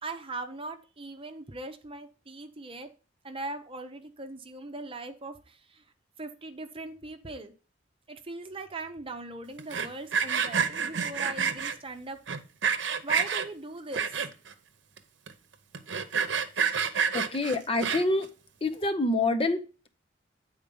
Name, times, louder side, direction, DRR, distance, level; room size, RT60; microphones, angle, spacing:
voice 1, 0.0-2.9 3.2-5.8 6.2-7.5 8.1-12.2 13.0-14.1, right 2 dB, 30° right, 0.9 m, -40 dB
Sawing, 9.6-11.7 12.3-13.5 13.9-14.5 15.0-15.1 15.3-15.4 15.7-18.2, right 6 dB, 75° right, 0.8 m, -28 dB
voice 2, 16.7-18.3 18.6-19.9, left 2 dB, 30° left, 0.7 m, -28 dB
8.9 x 4.4 x 5.3 m
head